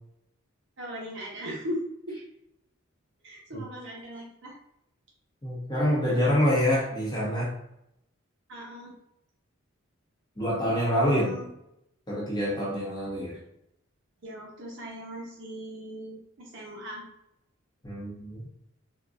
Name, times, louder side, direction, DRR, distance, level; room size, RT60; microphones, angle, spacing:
voice 1, 0.8-2.2 3.2-4.6 8.5-8.9 11.0-11.5 14.2-17.1, equal, 65° right, -3 dB, 0.7 m, -38 dB
voice 2, 5.4-7.5 10.4-11.3 12.1-13.4 17.8-18.4, equal, 20° left, -6 dB, 0.9 m, -26 dB
3.8 x 2.3 x 2.3 m, 0.80 s
head